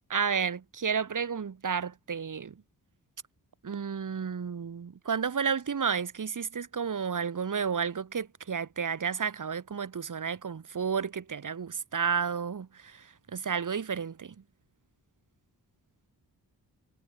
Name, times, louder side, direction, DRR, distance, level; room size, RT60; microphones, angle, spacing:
voice 1, 0.1-2.6 3.6-14.3, right 6 dB, 55° right, 1.7 m, -32 dB
wide cardioid pair, 80°, 37 cm